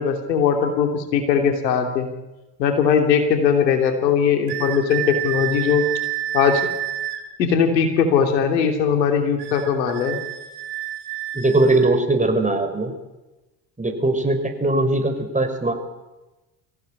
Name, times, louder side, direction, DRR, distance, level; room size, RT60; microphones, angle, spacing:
voice 1, 0.0-2.1 2.6-5.8 6.3-6.7 7.4-10.2, left 7 dB, 85° left, 5 dB, 3.0 m, -19 dB
sound 1, 4.5-7.2 9.4-11.9, right 13 dB, 80° right, 4.1 m, -29 dB
voice 2, 11.3-12.9 13.8-15.7, right 2 dB, 15° right, 5 dB, 6.2 m, -20 dB
25.0 x 16.5 x 9.7 m, 1.0 s
hypercardioid pair, 55°, 49 cm